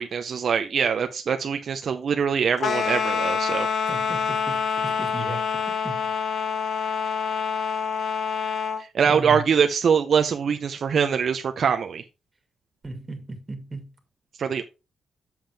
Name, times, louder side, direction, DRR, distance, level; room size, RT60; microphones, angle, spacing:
voice 1, 0.0-3.7 8.8-12.0 14.4-14.6, right 7 dB, 60° right, 0.6 m, -23 dB
sound 1, 2.6-8.8, left 6 dB, 65° left, 0.8 m, -26 dB
voice 2, 3.9-6.4 9.1-9.4 12.8-13.9, right 2 dB, 25° right, 2.1 m, -36 dB
7.5 x 7.2 x 3.4 m
cardioid pair, 115°, 0 cm